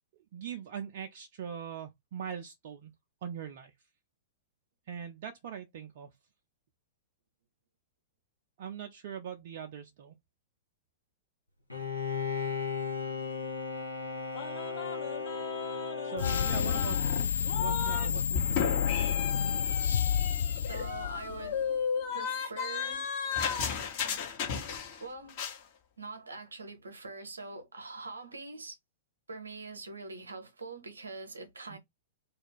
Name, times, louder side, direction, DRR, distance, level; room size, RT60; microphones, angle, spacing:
voice 1, 0.3-2.9 3.2-3.7 4.9-6.1 8.6-10.2 16.0-17.3 17.5-19.0 31.7-31.8, right 8 dB, 50° right, 0.4 m, -42 dB
Bowed string instrument, 11.7-17.3, left 5 dB, 90° left, 0.8 m, -36 dB
sound 1, 14.3-18.1 18.3-25.0 25.3-25.6, left 6 dB, 45° left, 0.9 m, -35 dB
sound 2, 16.2-21.6, left 8 dB, 60° left, 0.3 m, -30 dB
voice 2, 20.7-21.6 22.1-23.0 25.0-25.4 26.0-28.8 29.3-31.8, right 3 dB, 75° right, 0.7 m, -43 dB
2.4 x 2.2 x 3.4 m
figure-of-eight pair, 105°, 0 cm